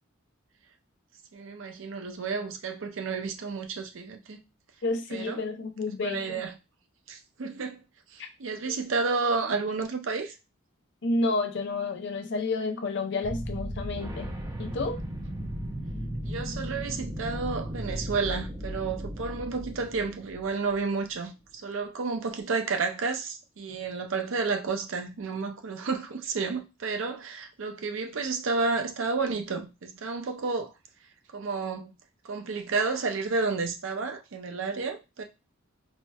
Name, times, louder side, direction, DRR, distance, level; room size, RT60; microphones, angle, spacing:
voice 1, 1.3-4.4 5.1-5.4 6.0-6.5 7.1-7.8 8.1-10.3 16.2-21.3 21.6-30.7 31.3-31.9 32.2-35.2, right 4 dB, 65° right, 0.5 m, -31 dB
voice 2, 4.8-6.4 8.2-8.3 8.7-8.8 11.0-14.3 14.6-15.0, left 3 dB, 60° left, 0.5 m, -30 dB
sound 1, 13.2-21.0, equal, 15° right, 0.5 m, -36 dB
4.3 x 2.1 x 2.2 m
head